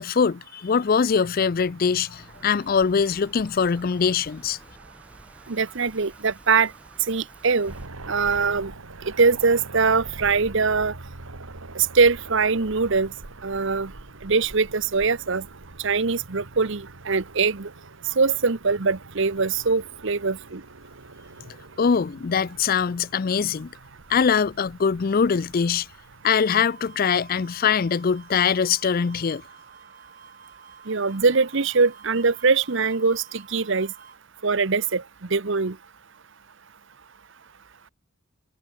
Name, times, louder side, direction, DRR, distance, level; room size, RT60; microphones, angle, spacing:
voice 1, 0.0-4.6 21.8-23.7 24.1-25.9 26.2-29.4, left 6 dB, 40° left, 0.4 m, -22 dB
sound 1, 2.1-7.9, equal, 5° right, 7.7 m, -51 dB
voice 2, 5.5-6.7 7.1-7.7 8.1-8.7 9.2-11.0 11.7-13.1 13.4-13.9 14.2-15.5 15.8-17.7 18.2-20.6 30.9-33.9 34.4-35.0 35.3-35.8, right 4 dB, 60° right, 0.9 m, -22 dB
sound 2, 7.6-26.2, right 2 dB, 85° right, 2.1 m, -44 dB
sound 3, 26.5-34.2, right 6 dB, 40° right, 7.4 m, -50 dB
head